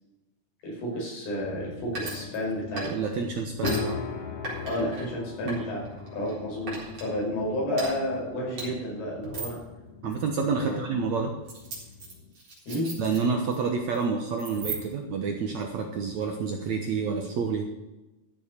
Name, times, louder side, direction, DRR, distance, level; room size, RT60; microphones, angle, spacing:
voice 1, 0.6-2.9 4.6-5.8 6.1-9.6 10.6-10.9 12.7-12.9, left 1 dB, 75° left, -4 dB, 7.4 m, -31 dB
sound 1, 1.4-12.3, left 4 dB, 50° left, 2.6 m, -40 dB
sound 2, 1.9-3.2 3.6-3.8 4.4-5.0 5.5-6.3 6.7-7.1 7.7-7.9 8.6-8.7 9.2-9.6 10.1-10.3 11.5-13.6 13.8-14.0 14.4-15.1, right 3 dB, 40° right, 4.9 m, -37 dB
voice 2, 2.7-4.0 5.4-5.7 10.0-11.3 13.0-17.6, right 5 dB, 65° right, 2 dB, 1.9 m, -29 dB
14.0 x 7.2 x 6.7 m, 1.0 s
omnidirectional pair, 4.5 m